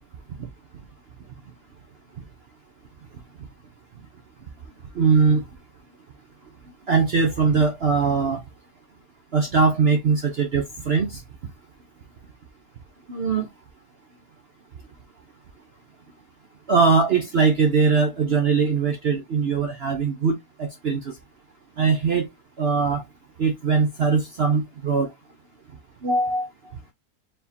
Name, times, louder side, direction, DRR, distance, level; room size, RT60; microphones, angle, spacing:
voice 1, 5.0-5.4 6.9-8.4 9.3-11.2 13.1-13.5 16.7-20.3 20.6-21.1 21.8-22.3 22.6-23.0 23.4-25.1 26.0-26.5, right 5 dB, 55° right, 0.8 m, -21 dB
4.5 x 3.6 x 2.7 m
omnidirectional pair, 1.7 m